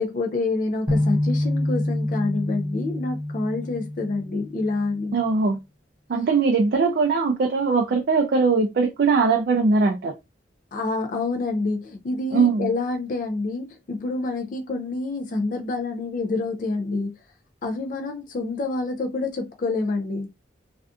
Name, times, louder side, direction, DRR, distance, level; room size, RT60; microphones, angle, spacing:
voice 1, 0.0-5.1 10.7-17.2 17.6-20.3, left 3 dB, 45° left, 0.3 m, -27 dB
sound 1, 0.9-4.9, left 1 dB, 5° right, 0.6 m, -26 dB
voice 2, 5.1-5.6 6.1-10.1 12.3-12.7, right 4 dB, 55° right, 0.4 m, -20 dB
2.5 x 2.3 x 2.4 m
head